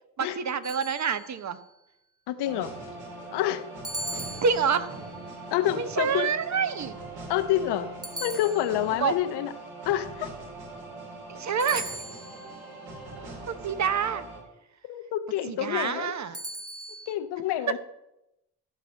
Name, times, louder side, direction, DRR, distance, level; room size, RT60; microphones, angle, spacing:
voice 1, 0.2-1.6 4.4-4.9 5.8-6.9 9.0-9.1 11.3-12.0 13.5-14.2 15.5-16.4, right 6 dB, 45° right, 12 dB, 1.0 m, -27 dB
sound 1, 0.6-1.6 3.8-5.1 8.0-9.1 11.6-12.6 16.3-17.1, right 1 dB, 10° right, 0.8 m, -38 dB
voice 2, 2.3-2.7 3.3-3.6 5.5-6.3 7.3-9.5 9.8-10.3 14.9-16.1 17.1-17.8, left 12 dB, 80° left, 11 dB, 0.9 m, -28 dB
sound 2, 2.4-14.4, right 2 dB, 65° right, 3.4 m, -41 dB
14.0 x 5.6 x 6.3 m, 0.88 s
supercardioid pair, 70°, 40 cm